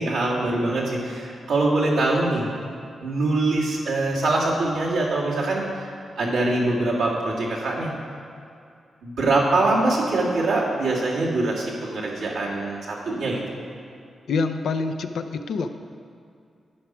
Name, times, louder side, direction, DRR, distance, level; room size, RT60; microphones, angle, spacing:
voice 1, 0.0-2.5 3.0-5.8 6.2-7.9 9.0-13.4, right 2 dB, 90° right, -7 dB, 1.8 m, -23 dB
voice 2, 14.3-15.8, left 4 dB, 75° left, 7 dB, 0.5 m, -26 dB
11.5 x 4.8 x 5.9 m, 2.4 s
supercardioid pair, 45°, 0 cm